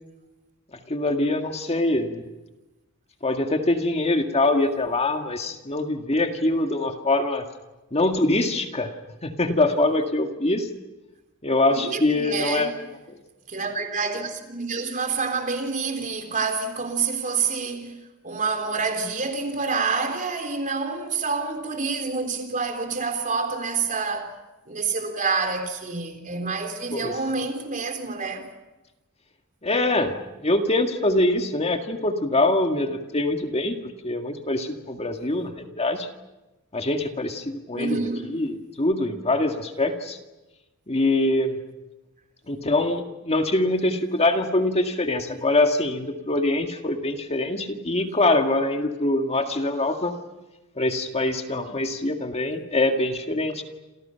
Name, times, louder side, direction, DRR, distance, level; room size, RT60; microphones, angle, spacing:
voice 1, 0.9-2.3 3.2-7.5 7.9-8.9 9.2-10.7 11.4-12.7 26.9-27.1 29.6-30.2 30.4-33.8 34.0-36.1 36.7-40.2 40.9-41.6 42.5-50.1 50.8-53.6, left 2 dB, 30° left, 2.0 m, -24 dB
voice 2, 11.7-12.7 13.5-18.0 18.2-24.4 24.7-28.5 37.7-38.3, right 4 dB, 35° right, 3.7 m, -27 dB
28.5 x 28.0 x 5.8 m
head